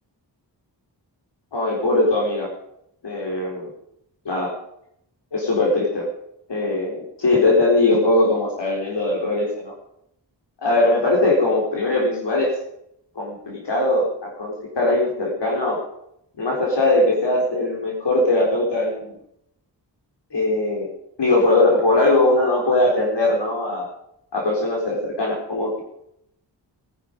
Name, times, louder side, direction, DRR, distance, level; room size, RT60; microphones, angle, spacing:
voice 1, 1.5-2.5 3.0-3.7 4.3-4.5 5.3-6.1 6.5-9.7 10.6-12.5 13.2-15.8 16.4-19.1 20.3-20.9 21.2-23.9 24.3-25.8, left 2 dB, 70° left, -2 dB, 4.0 m, -20 dB
21.0 x 10.5 x 5.3 m, 0.78 s
wide cardioid pair, 110°, 43 cm